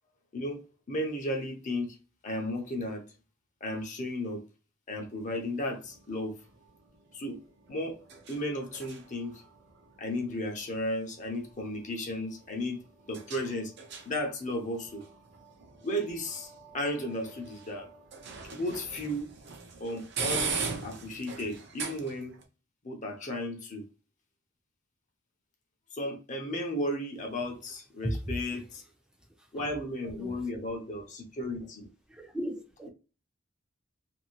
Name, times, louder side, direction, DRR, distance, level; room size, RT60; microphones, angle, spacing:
voice 1, 0.3-2.0 2.2-3.0 3.6-4.4 4.9-6.4 7.1-7.4 7.7-8.0 8.3-9.4 10.0-12.8 13.1-13.7 14.0-15.0 15.8-17.9 18.5-19.3 19.8-20.6 20.8-22.3 22.8-23.8 25.9-28.8 29.5-31.9, left 1 dB, 35° left, 0.6 m, -34 dB
sound 1, 5.0-22.4, right 5 dB, 55° right, 0.6 m, -42 dB
voice 2, 28.0-28.6 29.4-29.7 30.1-30.5 32.1-32.9, equal, 5° right, 0.5 m, -36 dB
2.6 x 2.6 x 2.9 m
head